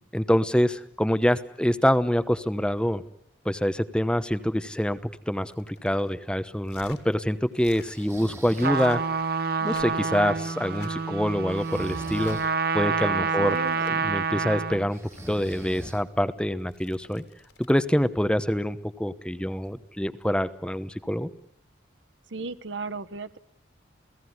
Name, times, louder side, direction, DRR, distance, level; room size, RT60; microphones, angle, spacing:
voice 1, 0.1-3.0 3.4-5.0 5.3-9.0 9.6-12.4 12.7-13.6 13.9-15.0 15.3-17.2 17.7-21.3, equal, 5° left, 13 dB, 0.9 m, -25 dB
sound 1, 5.4-6.1 6.6-7.0 7.5-7.9 8.6-9.1 9.6-10.2 10.6-10.9 12.0-12.4 13.2-13.9 14.8-15.6 16.6-17.8 19.6-19.8, left 4 dB, 65° left, 3.5 m, -51 dB
Breathing, 7.9-8.8 11.5-12.5 14.9-16.3, right 1 dB, 15° right, 1.9 m, -42 dB
Trumpet, 8.6-14.9, right 5 dB, 55° right, 1.3 m, -28 dB
voice 2, 13.1-13.8 22.3-23.4, right 3 dB, 80° right, 14 dB, 1.1 m, -35 dB
29.5 x 17.5 x 9.6 m, 0.74 s
head